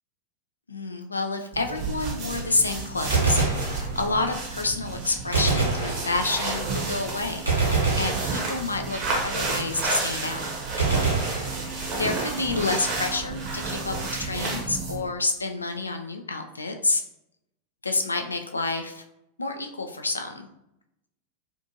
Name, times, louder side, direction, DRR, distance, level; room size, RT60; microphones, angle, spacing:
voice 1, 0.7-10.4 12.0-17.0 17.8-19.0 19.4-20.5, left 3 dB, 80° left, 5 dB, 0.3 m, -29 dB
sound 1, 1.5-15.1, right 3 dB, 40° right, 0.8 m, -31 dB
Gunshot gunfire, 3.1-4.3 5.3-6.5 7.5-8.9 10.8-12.1, right 4 dB, 80° right, 0.8 m, -26 dB
2.6 x 2.4 x 2.7 m, 0.84 s
figure-of-eight pair, 90°, 0 cm